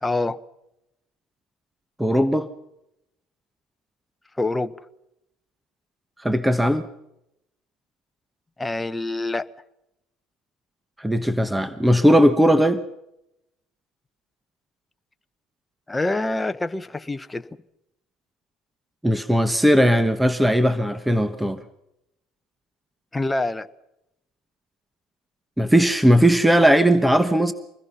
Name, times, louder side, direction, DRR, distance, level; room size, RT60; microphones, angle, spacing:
voice 1, 0.0-0.4 4.4-4.7 8.6-9.5 15.9-17.5 23.1-23.7, left 2 dB, 15° left, 1.0 m, -26 dB
voice 2, 2.0-2.5 6.2-6.8 11.0-12.8 19.0-21.6 25.6-27.5, equal, 5° right, 1.2 m, -18 dB
26.0 x 20.5 x 5.7 m
supercardioid pair, 85°, 0 cm